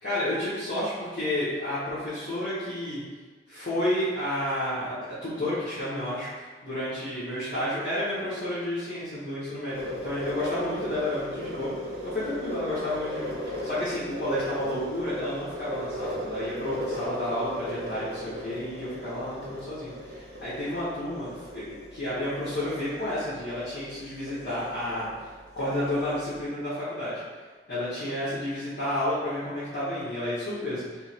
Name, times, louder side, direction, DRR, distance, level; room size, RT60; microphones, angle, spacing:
voice 1, 0.0-3.0 3.5-11.7 12.0-25.1 25.6-27.2 27.7-31.0, left 1 dB, 60° left, -13 dB, 1.1 m, -31 dB
sound 1, 9.7-26.4, equal, 65° right, 0.8 m, -38 dB
3.5 x 2.1 x 4.3 m, 1.4 s
head